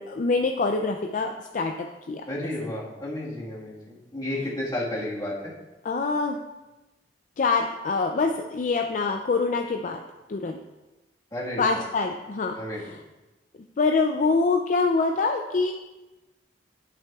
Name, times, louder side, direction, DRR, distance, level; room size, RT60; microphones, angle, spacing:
voice 1, 0.0-2.5 5.8-6.4 7.4-10.0 10.3-10.6 11.6-12.5 13.8-15.7, left 4 dB, 45° left, 3 dB, 0.4 m, -25 dB
voice 2, 2.3-5.5 11.3-11.8 12.5-12.9, left 1 dB, 20° left, -5 dB, 1.6 m, -32 dB
10.0 x 5.8 x 2.3 m, 1.1 s
head